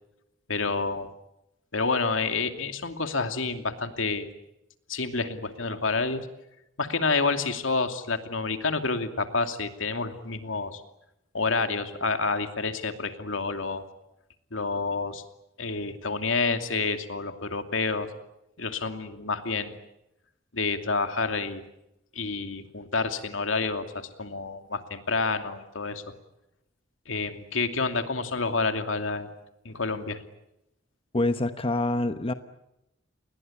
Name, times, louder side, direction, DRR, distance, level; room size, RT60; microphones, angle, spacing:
voice 1, 0.5-1.1 1.7-4.3 4.9-6.3 6.8-10.8 11.3-13.8 14.5-15.2 15.6-18.1 18.6-19.8 20.5-21.6 22.1-26.0 27.1-29.3 29.6-30.2, left 4 dB, 80° left, 7 dB, 2.6 m, -28 dB
voice 2, 31.1-32.3, left 2 dB, 30° left, 9 dB, 1.1 m, -26 dB
29.5 x 21.0 x 8.7 m, 0.84 s
head